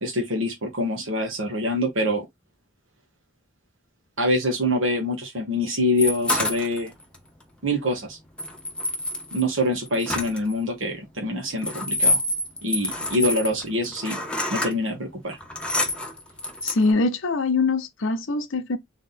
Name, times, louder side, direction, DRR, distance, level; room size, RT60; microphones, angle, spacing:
voice 1, 0.0-2.2 4.2-6.9 7.6-8.2 9.3-12.2 12.6-14.2 14.5-15.4, left 1 dB, 85° right, 1.3 m, -25 dB
sound 1, 6.0-7.1 8.4-10.5 11.4-14.7 15.3-16.9, left 1 dB, 5° left, 0.8 m, -27 dB
voice 2, 16.6-18.8, left 3 dB, 75° left, 0.7 m, -23 dB
3.6 x 2.9 x 3.8 m
head